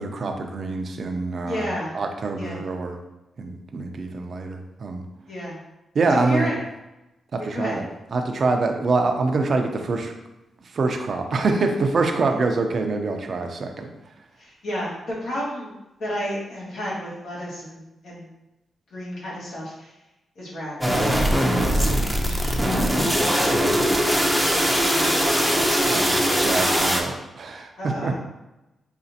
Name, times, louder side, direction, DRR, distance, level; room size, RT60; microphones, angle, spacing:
voice 1, 0.0-1.7 1.9-3.0 3.4-5.0 5.9-6.5 7.3-7.8 8.1-10.1 10.6-13.9 23.5-24.3 25.9-28.2, right 3 dB, 55° right, 4 dB, 0.5 m, -25 dB
voice 2, 1.4-2.0 2.4-2.6 5.3-5.6 6.1-6.5 7.4-7.8 14.4-15.7 16.0-18.3 18.9-19.9 20.3-23.6 23.9-25.7 27.8-28.2, equal, 80° left, -7 dB, 1.5 m, -32 dB
sound 1, 20.8-27.0, equal, ahead, 0.6 m, -21 dB
5.0 x 2.4 x 2.7 m, 0.96 s
cardioid pair, 90°, 0 cm